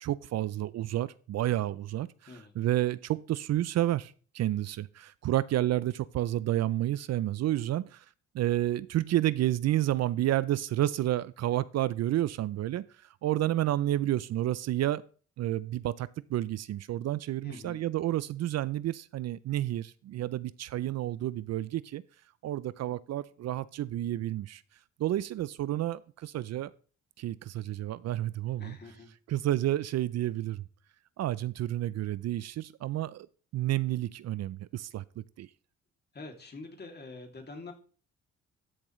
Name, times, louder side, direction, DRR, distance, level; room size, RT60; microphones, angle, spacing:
voice 1, 0.0-2.1 2.6-8.0 8.3-12.8 13.2-15.0 15.4-22.0 22.4-24.6 25.0-26.7 27.2-28.8 29.3-30.6 31.2-33.3 33.5-35.0 35.4-35.5, right 14 dB, 60° right, 18 dB, 0.5 m, -30 dB
voice 2, 17.4-17.8 28.6-29.1 36.1-37.7, left 3 dB, 35° left, 3 dB, 2.6 m, -45 dB
13.0 x 7.2 x 3.1 m, 0.40 s
cardioid pair, 90°, 30 cm